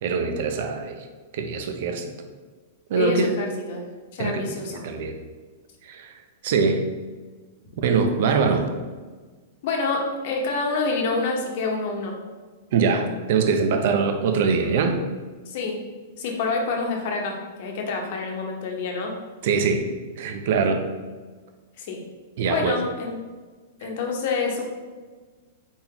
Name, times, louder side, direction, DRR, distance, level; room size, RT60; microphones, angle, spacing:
voice 1, 0.0-1.1 1.3-2.1 2.9-3.3 4.2-5.2 5.8-6.1 6.4-6.8 7.8-8.6 12.7-15.0 19.4-19.8 20.2-20.8 22.4-22.8, right 5 dB, 60° right, 5 dB, 0.6 m, -23 dB
voice 2, 2.9-3.9 4.1-4.8 9.6-12.2 15.5-15.8 16.2-19.1 21.8-22.0 22.5-23.2 23.8-24.6, left 4 dB, 60° left, 1 dB, 1.0 m, -27 dB
4.3 x 3.7 x 2.9 m, 1.4 s
hypercardioid pair, 130°, 0 cm